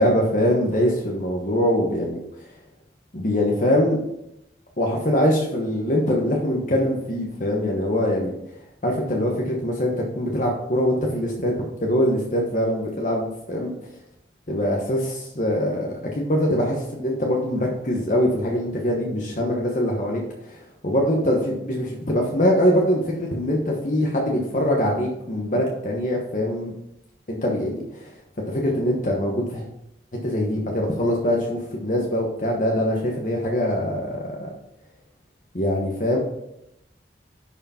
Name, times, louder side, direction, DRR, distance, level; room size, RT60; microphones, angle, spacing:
voice 1, 0.0-2.2 3.1-4.0 4.8-8.3 8.8-13.7 14.5-20.6 20.8-26.7 27.3-28.1 28.5-29.6 30.2-34.5 35.5-36.2, equal, 45° left, -1 dB, 1.2 m, -23 dB
11.0 x 5.0 x 4.3 m, 0.82 s
head